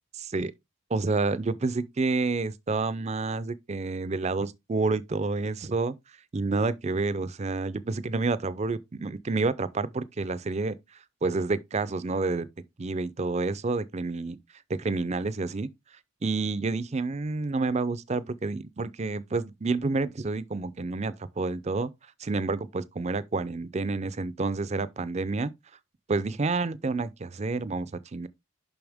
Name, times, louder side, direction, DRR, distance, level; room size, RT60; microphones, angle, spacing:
voice 1, 0.1-0.5 0.9-5.9 6.3-10.7 11.2-12.5 12.8-14.4 14.7-15.7 16.2-21.9 22.2-25.5 26.1-28.3, right 3 dB, 30° right, 0.4 m, -29 dB
7.0 x 5.6 x 3.5 m
head